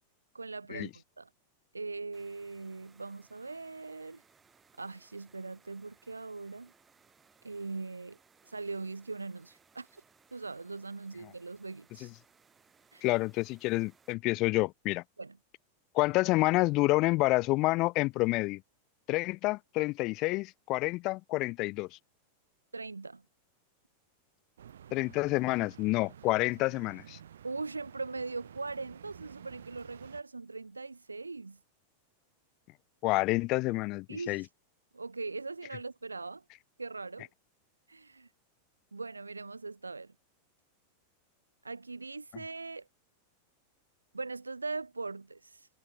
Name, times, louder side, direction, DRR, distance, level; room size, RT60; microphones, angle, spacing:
voice 1, 0.3-1.3 1.7-4.2 4.8-6.7 7.4-8.2 8.4-10.0 10.3-12.1 12.9-13.0 15.2-15.4 22.7-23.2 27.4-31.6 34.1-34.5 34.9-36.4 36.8-37.3 37.9-38.3 38.9-40.1 41.6-42.9 44.1-45.7, right 3 dB, 80° right, 0.6 m, -40 dB
sound 1, 2.1-14.1, right 5 dB, 15° right, 5.2 m, -65 dB
voice 2, 13.0-15.0 15.9-18.6 19.1-21.9 24.9-27.2 33.0-34.4, left 21 dB, 40° left, 0.3 m, -28 dB
sound 2, 24.6-30.2, right 9 dB, 65° right, 1.9 m, -52 dB
figure-of-eight pair, 90°, 0 cm